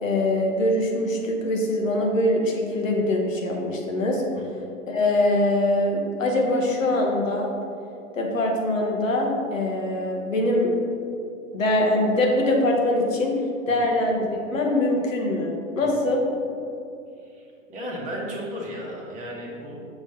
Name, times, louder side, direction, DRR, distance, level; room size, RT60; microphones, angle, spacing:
voice 1, 0.0-4.2 4.9-7.5 8.1-10.7 11.5-13.4 13.7-16.2, left 1 dB, 70° left, 0 dB, 1.2 m, -23 dB
voice 2, 17.2-19.8, equal, 20° right, -3 dB, 1.1 m, -35 dB
6.1 x 3.1 x 5.2 m, 2.5 s
figure-of-eight pair, 100°, 41 cm